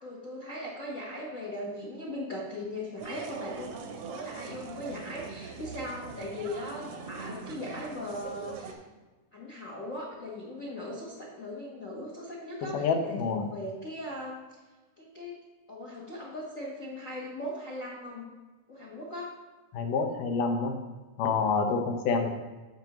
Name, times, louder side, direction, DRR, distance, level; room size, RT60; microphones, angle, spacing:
voice 1, 0.0-3.7 4.0-8.8 9.3-14.3 15.0-15.3 15.7-18.3 18.7-19.3 22.1-22.3, left 1 dB, 65° left, -4 dB, 0.8 m, -39 dB
sound 1, 3.0-8.7, right 5 dB, 70° right, 1.4 m, -42 dB
voice 2, 12.7-13.5 19.7-20.7 21.2-22.3, left 4 dB, 85° left, 4 dB, 2.5 m, -27 dB
15.0 x 5.3 x 3.0 m, 1.2 s
omnidirectional pair, 3.7 m